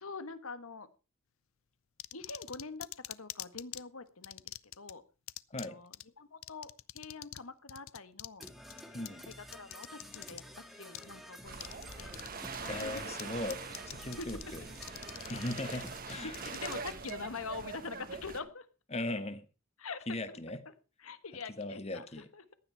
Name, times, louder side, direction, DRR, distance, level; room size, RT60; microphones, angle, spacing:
voice 1, 0.0-0.9 2.1-5.0 5.5-8.5 9.3-10.4 10.8-12.1 12.6-13.1 14.2-14.3 15.5-18.7 19.8-20.4 20.6-20.7 21.0-22.1 22.3-22.4, left 4 dB, 85° left, 12 dB, 1.4 m, -45 dB
sound 1, 2.0-3.8 4.2-4.9 5.3-5.7 5.9-6.0 6.4-7.4 7.7-10.4 10.9-11.1 11.6-12.3 12.5-13.2 13.5-14.4 14.8-17.1, left 14 dB, 70° left, 0.5 m, -44 dB
Percussion / Brass instrument, 8.4-16.9, equal, ahead, 2.2 m, -51 dB
sound 2, 11.4-18.4, right 4 dB, 45° right, 1.4 m, -43 dB
voice 2, 12.6-14.6 15.3-16.3 18.9-19.4 20.1-20.6 21.6-22.3, left 1 dB, 30° left, 11 dB, 1.4 m, -38 dB
15.0 x 10.5 x 4.5 m, 0.32 s
head